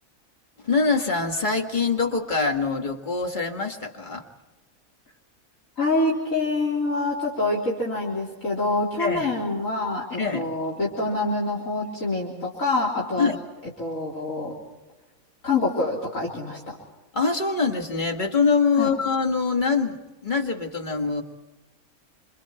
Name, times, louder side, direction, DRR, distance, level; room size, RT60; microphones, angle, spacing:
voice 1, 0.6-4.2 9.0-9.3 10.2-10.5 13.2-13.4 17.1-21.2, left 4 dB, 35° left, 3 dB, 2.3 m, -24 dB
voice 2, 5.8-13.3 13.8-14.5 15.4-16.7 18.8-18.9, left 2 dB, 70° left, -4 dB, 4.1 m, -26 dB
30.0 x 26.0 x 4.5 m, 1.1 s
omnidirectional pair, 1.4 m